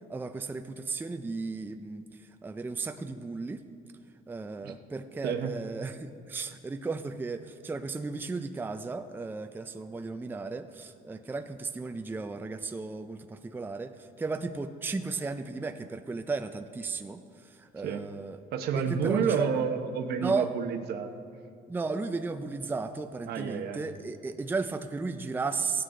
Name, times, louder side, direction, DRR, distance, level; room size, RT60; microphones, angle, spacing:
voice 1, 0.1-3.6 4.3-18.4 18.9-19.5 20.2-20.5 21.7-25.8, right 4 dB, 10° right, 8 dB, 0.4 m, -35 dB
voice 2, 5.2-5.5 17.8-18.0 18.5-21.1 23.3-23.9, right 6 dB, 70° right, 6 dB, 0.9 m, -30 dB
16.5 x 9.2 x 3.8 m, 2.4 s
cardioid pair, 110°, 17 cm